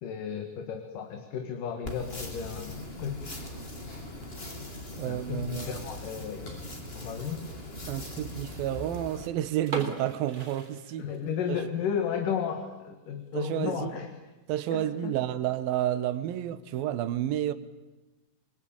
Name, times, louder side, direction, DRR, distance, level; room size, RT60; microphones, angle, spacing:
voice 1, 0.0-3.3 5.0-6.5 7.0-7.4 11.0-14.1 14.7-15.1, left 7 dB, 65° left, 3.3 m, -33 dB
sound 1, 1.8-9.3, left 1 dB, 20° left, 2.5 m, -40 dB
sound 2, 3.2-4.1 4.3-4.6 4.9-8.2, left 2 dB, 50° left, 9.1 m, -52 dB
voice 2, 5.0-5.8 7.8-11.1 11.5-11.6 13.3-14.0 14.5-17.5, right 12 dB, 80° right, 2.9 m, -30 dB
sound 3, 9.7-11.5 11.8-11.9 12.5-12.7 13.1-13.2 13.4-13.5 14.3-14.6, right 3 dB, 35° right, 4.0 m, -39 dB
28.0 x 23.0 x 8.9 m
omnidirectional pair, 4.1 m